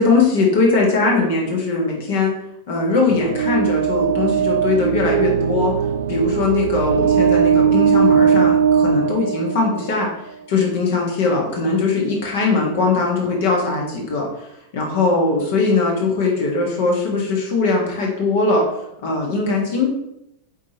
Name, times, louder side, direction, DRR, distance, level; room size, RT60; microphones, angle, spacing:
voice 1, 0.0-2.3 2.7-5.7 6.1-10.1 10.5-14.5 14.7-18.7 19.0-19.9, left 3 dB, 55° left, -1 dB, 1.6 m, -20 dB
sound 1, 3.1-10.0, right 7 dB, 65° right, 0.3 m, -18 dB
8.0 x 4.4 x 3.0 m, 0.81 s
figure-of-eight pair, 90°, 0 cm